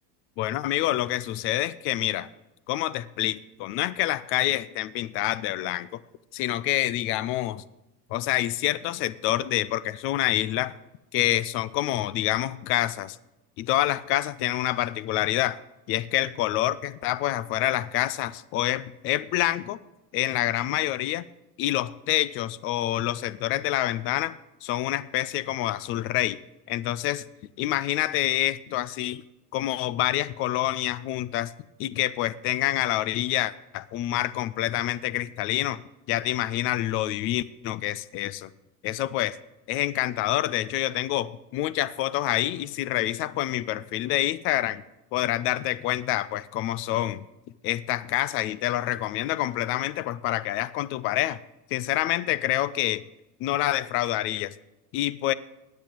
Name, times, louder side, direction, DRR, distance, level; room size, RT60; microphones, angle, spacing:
voice 1, 0.4-2.3 2.7-6.0 6.3-7.6 8.1-10.7 11.1-13.2 13.6-15.6 15.9-19.8 20.1-21.3 21.6-26.4 26.7-27.2 27.6-29.2 29.5-31.5 31.8-35.8 36.1-38.5 38.8-39.4 39.7-44.8 45.1-47.2 47.6-51.4 51.7-53.0 53.4-54.5 54.9-55.3, left 14 dB, 30° left, 18 dB, 0.4 m, -27 dB
10.0 x 8.3 x 8.7 m, 0.99 s
hypercardioid pair, 90°, 49 cm